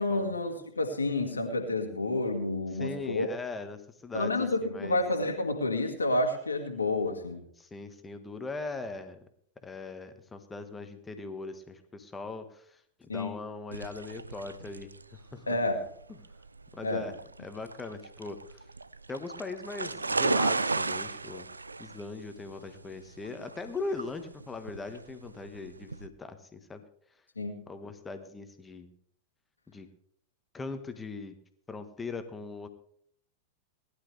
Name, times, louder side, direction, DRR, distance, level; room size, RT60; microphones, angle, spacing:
voice 1, 0.0-3.3 4.1-7.4 13.1-13.3 15.5-15.8 16.8-17.0 27.4-27.6, left 2 dB, 80° left, 4 dB, 2.0 m, -29 dB
voice 2, 2.7-5.0 7.6-9.2 9.6-14.9 15.3-15.5 16.7-18.6 19.1-21.5 21.8-26.8 27.7-28.9 29.7-29.9 30.5-31.4 31.7-32.7, left 3 dB, 15° left, 8 dB, 1.6 m, -40 dB
sound 1, 13.7-26.1, right 3 dB, 85° right, 0.4 m, -35 dB
19.0 x 11.5 x 3.4 m, 0.64 s
figure-of-eight pair, 95°, 0 cm